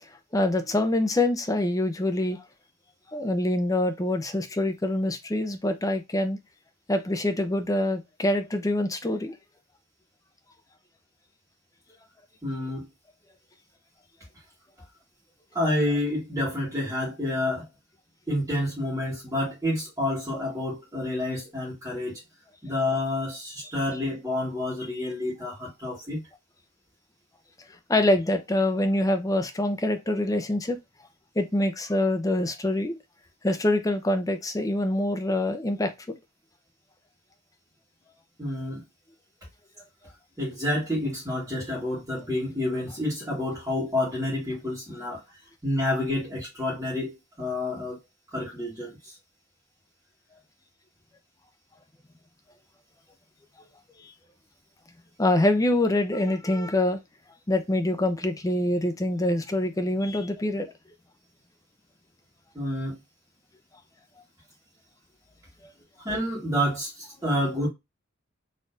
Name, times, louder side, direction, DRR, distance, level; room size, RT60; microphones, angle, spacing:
voice 1, 0.3-2.4 3.1-6.4 6.9-9.3 23.6-23.7 27.9-30.8 31.4-33.0 33.4-35.9 54.0-54.1 55.2-57.0 57.5-60.7, left 1 dB, 15° left, 0.5 m, -25 dB
voice 2, 12.4-12.9 15.5-17.7 18.3-22.2 22.6-26.2 38.4-38.8 40.4-45.2 45.6-48.0 48.3-49.1 62.5-63.0 66.0-67.7, left 1 dB, 15° right, 1.6 m, -29 dB
4.2 x 3.1 x 2.6 m
head